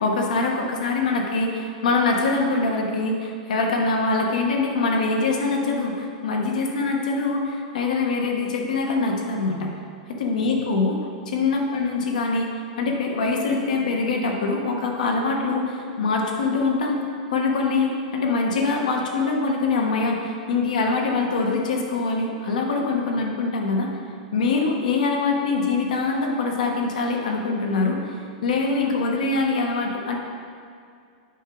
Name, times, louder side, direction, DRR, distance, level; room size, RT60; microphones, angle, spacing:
voice 1, 0.0-9.7 10.2-11.0 11.3-12.5 12.8-17.0 17.3-23.9 24.3-28.0 28.4-30.1, left 3 dB, 85° left, 1 dB, 1.2 m, -23 dB
9.8 x 5.7 x 3.9 m, 2.3 s
supercardioid pair, 155°, 4 cm